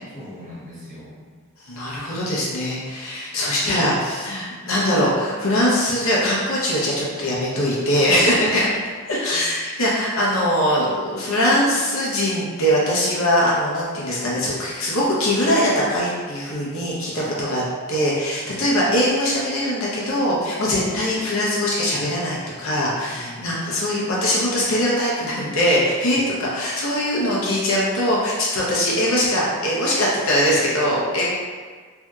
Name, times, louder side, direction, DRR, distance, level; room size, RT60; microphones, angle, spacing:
voice 1, 0.1-1.4 8.4-8.6 17.2-17.5 18.4-18.8 23.1-23.6 26.1-26.3, left 1 dB, 35° right, -10 dB, 1.2 m, -40 dB
voice 2, 1.6-8.7 9.1-17.6 17.9-31.3, equal, 65° left, -6 dB, 0.8 m, -21 dB
3.3 x 2.7 x 2.3 m, 1.5 s
head